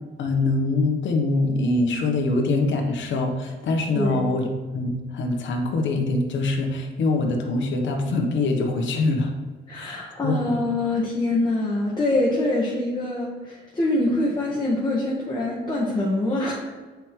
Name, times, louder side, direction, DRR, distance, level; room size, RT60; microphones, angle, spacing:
voice 1, 0.2-4.5 4.7-9.3 9.7-10.6, left 2 dB, 70° left, 3 dB, 1.1 m, -24 dB
voice 2, 9.7-16.5, left 2 dB, 20° left, -5 dB, 1.4 m, -24 dB
8.0 x 4.7 x 3.1 m, 1.4 s
cardioid pair, 90°, 20 cm